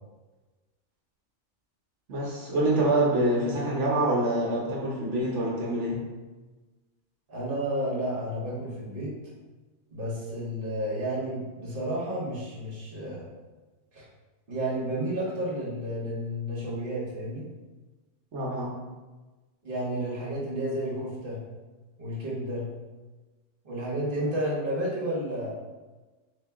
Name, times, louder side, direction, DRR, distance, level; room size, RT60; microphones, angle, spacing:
voice 1, 2.1-6.0 18.3-18.7, right 1 dB, 65° right, -3 dB, 1.1 m, -26 dB
voice 2, 7.3-9.1 9.9-13.3 13.9-14.1 14.5-17.4 19.6-21.4 22.0-22.7 23.6-25.5, right 1 dB, 45° right, -5 dB, 1.3 m, -31 dB
3.4 x 2.8 x 3.4 m, 1.2 s
omnidirectional pair, 1.3 m